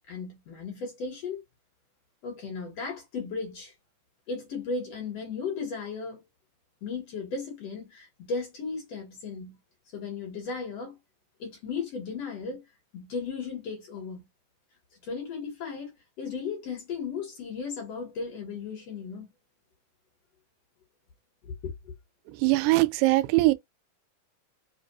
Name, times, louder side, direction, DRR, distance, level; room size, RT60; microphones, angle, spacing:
voice 1, 0.1-1.4 2.2-3.7 4.3-6.2 6.8-9.6 9.9-11.0 11.4-12.7 12.9-14.3 15.0-19.3 21.4-21.9, left 5 dB, 55° left, 2.1 m, -35 dB
voice 2, 22.4-23.5, right 20 dB, 80° right, 2.0 m, -21 dB
5.3 x 2.5 x 2.6 m
omnidirectional pair, 4.0 m